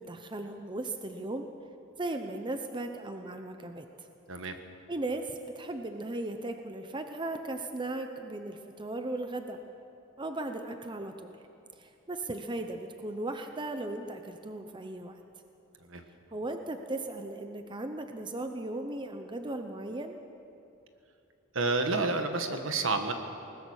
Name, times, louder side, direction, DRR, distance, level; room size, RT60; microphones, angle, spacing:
voice 1, 0.0-1.5 2.0-4.1 4.9-9.6 10.2-11.3 11.7-15.2 16.3-20.2, right 2 dB, 25° right, 6 dB, 0.9 m, -37 dB
voice 2, 21.5-23.1, right 3 dB, 65° right, 6 dB, 1.6 m, -29 dB
20.5 x 20.0 x 6.5 m, 2.7 s
head